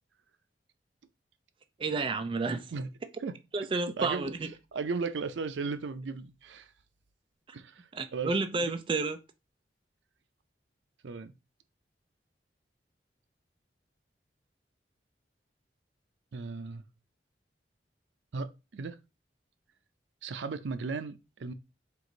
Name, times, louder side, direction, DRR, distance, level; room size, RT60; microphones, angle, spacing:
voice 1, 1.8-2.7 3.5-4.5 7.9-9.2, right 3 dB, 30° right, 0.3 m, -31 dB
voice 2, 4.0-4.3 4.7-6.7 7.5-8.8 11.0-11.3 16.3-16.8 18.3-19.0 20.2-21.5, right 4 dB, 90° right, 0.5 m, -36 dB
4.6 x 2.5 x 3.8 m
head